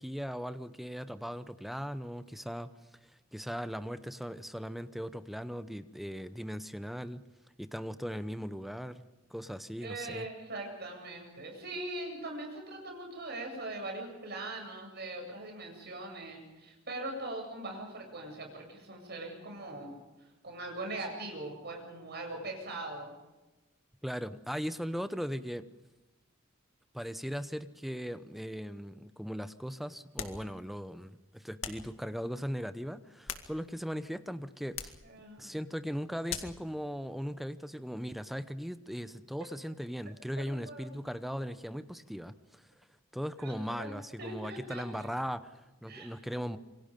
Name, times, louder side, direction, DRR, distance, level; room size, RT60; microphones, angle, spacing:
voice 1, 0.0-2.7 3.0-7.2 7.6-10.3 24.0-25.7 26.9-34.9 35.4-42.7 43.1-46.6, equal, ahead, 11 dB, 0.8 m, -38 dB
voice 2, 9.8-20.0 20.4-23.1 35.0-35.5 40.4-40.9 43.4-45.1 45.9-46.4, right 2 dB, 55° right, 2 dB, 8.0 m, -41 dB
sound 1, 30.1-30.5 31.6-31.9 33.0-33.9 34.7-35.1 36.3-36.6, left 7 dB, 70° left, 2.2 m, -41 dB
27.5 x 24.0 x 5.3 m, 1.1 s
head